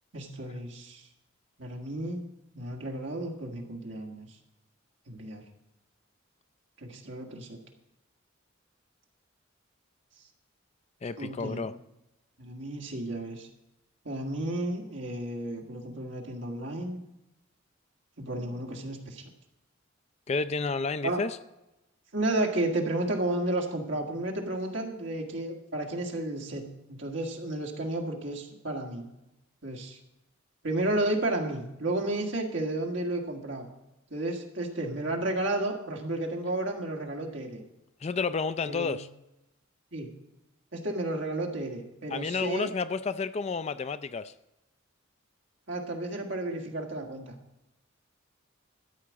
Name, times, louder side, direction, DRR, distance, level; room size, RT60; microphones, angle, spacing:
voice 1, 0.1-1.0 1.6-2.2 2.6-4.3 5.1-5.4 6.8-7.6 11.2-11.6 12.4-13.5 14.0-17.0 18.2-19.2 21.0-21.2 22.1-29.1 29.6-30.0 30.6-33.7 34.1-37.6 38.7-39.0 39.9-40.2 40.7-42.7 45.7-47.4, right 1 dB, 65° right, 0 dB, 1.9 m, -32 dB
voice 2, 11.0-11.7 20.3-21.4 38.0-39.1 42.1-44.3, left 4 dB, 30° left, 13 dB, 0.3 m, -31 dB
13.5 x 5.0 x 8.4 m, 0.91 s
head